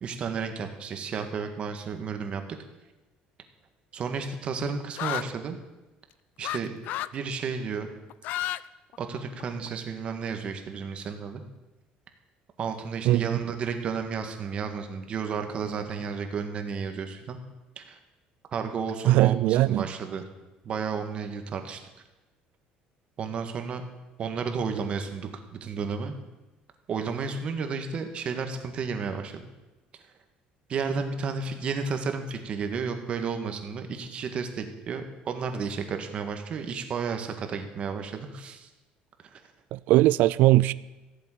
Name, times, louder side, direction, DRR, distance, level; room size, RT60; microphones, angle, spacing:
voice 1, 0.0-2.4 3.9-5.6 6.4-6.7 7.1-7.9 9.0-11.4 12.6-17.4 17.8-18.0 18.5-20.3 20.6-21.8 23.2-23.8 24.2-26.2 26.9-29.4 30.7-38.7 39.3-39.4, right 5 dB, 40° right, 6 dB, 1.8 m, -32 dB
sound 1, 5.0-5.3 6.4-6.6 6.8-7.2 8.1-8.6 8.9-9.7, left 14 dB, 65° left, 0.4 m, -31 dB
voice 2, 13.1-13.4 19.1-19.9 39.7-40.7, right 16 dB, 70° right, 18 dB, 0.4 m, -20 dB
15.0 x 7.8 x 9.1 m, 1.1 s
cardioid pair, 155°, 3 cm